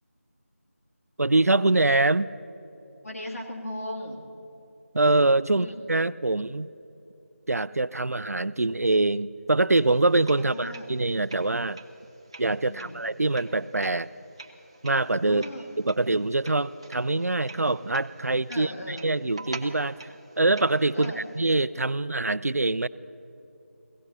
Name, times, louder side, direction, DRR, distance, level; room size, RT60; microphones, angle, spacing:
voice 1, 1.2-2.3 4.9-6.7 7.5-11.8 12.4-14.1 14.8-15.5 15.8-22.9, right 2 dB, 85° right, 17 dB, 0.4 m, -24 dB
voice 2, 3.0-4.3 5.5-5.7 10.5-10.9 12.6-13.0 15.3-15.6 18.5-19.1 20.9-21.2, left 1 dB, 70° left, -2 dB, 2.5 m, -37 dB
sound 1, 9.8-21.6, right 3 dB, 20° right, 0.5 m, -47 dB
29.5 x 17.0 x 2.8 m, 2.8 s
figure-of-eight pair, 170°, 8 cm